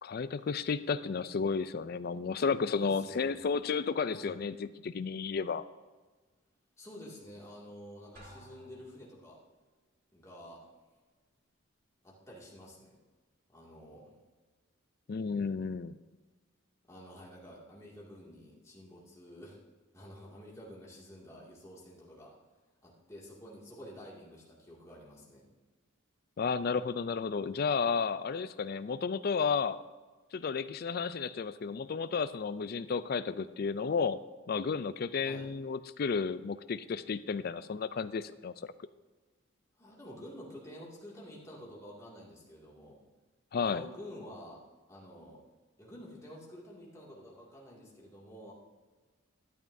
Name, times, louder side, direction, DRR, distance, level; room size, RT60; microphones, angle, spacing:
voice 1, 0.0-5.6 15.1-16.0 26.4-29.8 30.3-34.2 34.5-38.7 43.5-43.8, left 5 dB, 50° left, 14 dB, 0.4 m, -32 dB
voice 2, 2.7-3.5 4.1-4.4 6.8-9.4 10.1-10.7 12.0-13.0 13.5-14.1 16.9-19.6 19.9-22.3 22.8-25.5 35.2-35.5 39.8-43.0 43.6-44.6 44.9-45.4 45.8-48.5, equal, 15° left, -5 dB, 2.2 m, -49 dB
Drum, 8.2-9.4, equal, 45° right, 2.7 m, -54 dB
12.0 x 11.0 x 2.7 m, 1.3 s
head